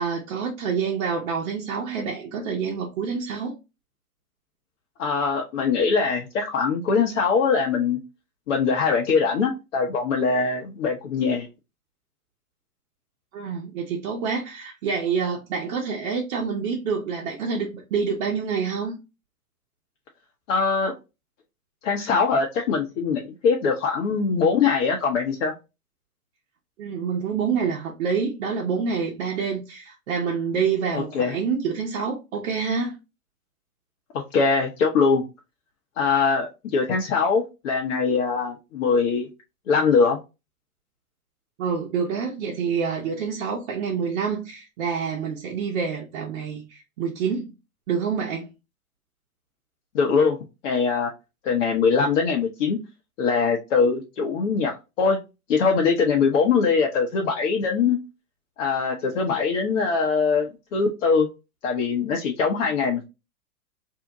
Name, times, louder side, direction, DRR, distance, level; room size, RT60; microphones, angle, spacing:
voice 1, 0.0-3.5 13.3-19.0 26.8-33.0 41.6-47.5 47.9-48.5, right 6 dB, 50° right, 0.9 m, -27 dB
voice 2, 5.0-8.0 8.5-11.5 20.5-20.9 21.8-25.5 30.9-31.4 34.3-35.2 36.0-39.3 39.7-40.2 49.9-50.4 50.6-51.1 51.4-52.8 53.2-55.2 55.5-58.0 58.6-61.3 61.6-63.0, left 5 dB, 55° left, 0.7 m, -22 dB
2.7 x 2.1 x 3.7 m
hypercardioid pair, 110°, 45 cm